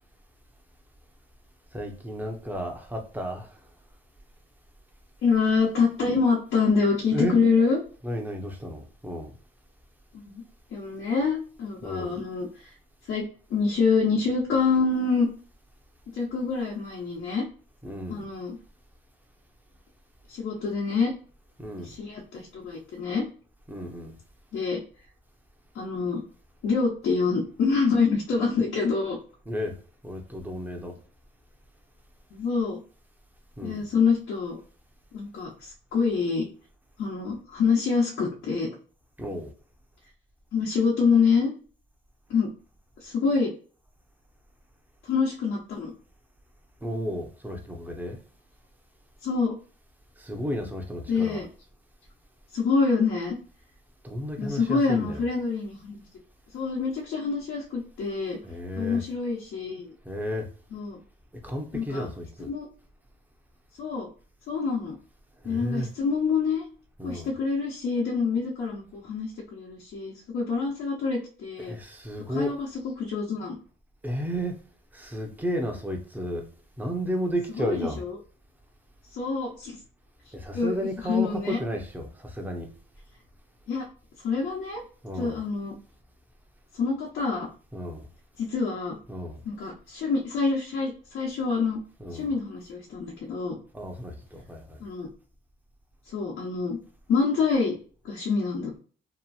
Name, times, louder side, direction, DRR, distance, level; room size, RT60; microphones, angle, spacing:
voice 1, 1.7-3.5 7.1-7.4 8.0-9.3 11.8-12.2 17.8-18.3 21.6-21.9 23.7-24.2 29.5-29.8 30.0-31.0 33.6-33.8 39.2-39.5 46.8-48.2 50.2-51.4 54.0-55.3 58.4-59.0 60.0-60.5 61.4-62.5 65.4-65.9 67.0-67.3 71.6-72.5 74.0-74.6 74.9-76.4 76.8-78.0 80.3-82.7 85.0-85.4 87.7-88.1 89.1-89.4 92.0-92.3 93.7-94.8, equal, 10° right, 0.9 m, -33 dB
voice 2, 5.2-7.8 10.1-10.4 10.7-12.7 13.1-13.2 13.5-15.3 16.1-17.5 18.1-18.6 20.3-21.1 21.8-23.3 24.5-24.8 25.7-26.2 26.6-29.2 32.3-32.8 33.6-34.6 35.1-36.5 37.0-38.7 40.5-41.5 42.3-42.5 43.0-43.5 45.0-45.9 49.2-49.6 51.1-51.5 52.5-53.4 54.4-56.0 56.5-58.4 58.8-59.9 60.7-61.0 61.7-62.1 62.4-62.7 63.8-64.1 64.5-65.0 65.4-66.6 67.0-71.7 72.3-73.5 77.6-78.2 79.1-79.8 80.5-81.6 83.7-83.8 84.2-84.8 85.1-85.7 86.8-87.5 88.4-89.0 89.4-91.8 92.1-93.6 94.8-95.1 96.1-96.8 97.1-97.8 98.0-98.8, left 5 dB, 70° left, 1.0 m, -26 dB
2.9 x 2.5 x 2.4 m
cardioid pair, 90°, 20 cm